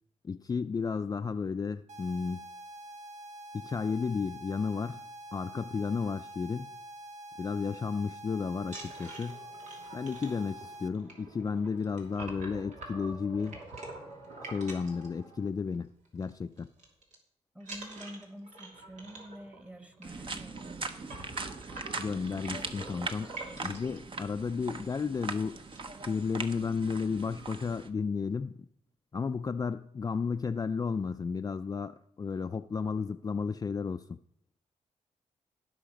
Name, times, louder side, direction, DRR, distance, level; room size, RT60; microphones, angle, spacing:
voice 1, 0.2-2.5 3.5-5.0 5.3-6.7 7.4-9.4 9.9-13.6 14.4-16.7 22.0-23.3 23.6-25.6 26.1-28.6 29.1-34.2, left 5 dB, 30° left, 0.4 m, -33 dB
sound 1, 1.9-10.9, right 1 dB, 70° right, 0.8 m, -46 dB
sound 2, 8.6-15.8 16.1-16.3 16.6-17.2 17.6-24.0 24.7-24.8 25.1-25.2 25.5-26.1, right 2 dB, 85° right, 2.8 m, -46 dB
voice 2, 17.5-21.0, equal, 10° right, 1.2 m, -47 dB
sound 3, 20.0-27.9, right 4 dB, 45° right, 1.0 m, -40 dB
17.0 x 5.8 x 5.1 m
cardioid pair, 80°, 12 cm